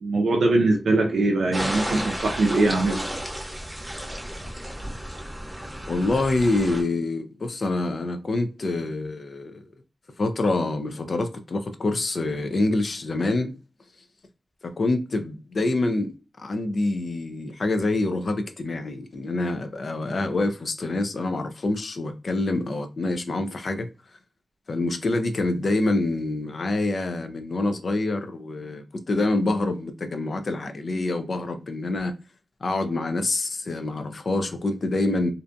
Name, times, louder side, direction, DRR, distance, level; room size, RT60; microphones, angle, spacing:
voice 1, 0.0-3.0, right 2 dB, 85° right, 0.4 m, -22 dB
sound 1, 1.5-6.8, equal, 15° right, 0.8 m, -33 dB
voice 2, 5.9-9.6 10.2-13.5 14.6-23.9 24.7-32.1 32.6-35.3, left 2 dB, 60° left, 0.4 m, -26 dB
2.6 x 2.2 x 2.5 m
cardioid pair, 70°, 0 cm